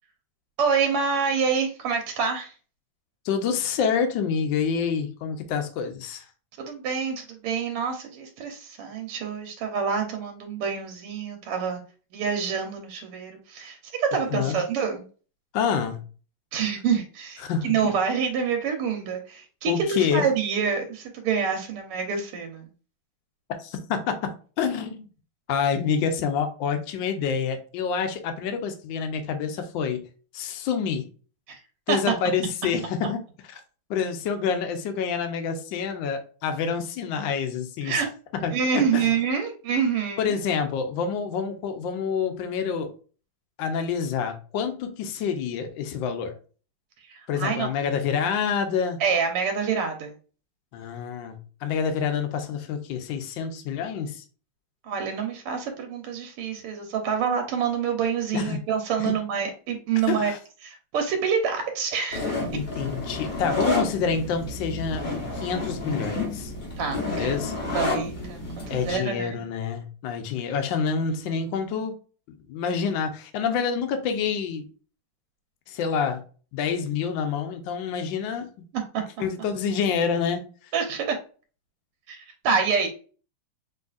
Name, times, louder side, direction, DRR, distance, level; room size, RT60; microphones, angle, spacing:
voice 1, 0.6-2.5 6.6-11.8 12.1-15.0 16.5-22.7 31.5-31.6 31.9-32.1 37.8-38.1 38.5-40.4 47.0-47.7 49.0-50.1 54.8-60.3 60.6-62.6 66.8-69.4 78.9-79.0 80.7-81.2 82.1-82.9, right 6 dB, 90° right, 1.8 m, -27 dB
voice 2, 3.2-6.2 14.3-14.6 15.5-16.0 17.4-17.9 19.7-20.3 23.6-25.0 25.5-30.1 30.3-31.1 31.9-33.2 33.9-38.0 38.4-38.6 38.9-39.1 40.2-42.9 43.6-46.4 47.3-49.0 50.7-54.2 58.3-58.6 59.0-59.1 60.1-60.4 62.5-65.1 65.3-66.5 67.1-67.5 68.7-71.9 72.3-74.7 75.7-76.2 76.5-78.5 79.2-80.4, left 6 dB, 70° left, 1.3 m, -27 dB
sound 1, 62.1-68.9, left 2 dB, 35° left, 0.8 m, -30 dB
5.2 x 3.2 x 2.4 m
omnidirectional pair, 2.4 m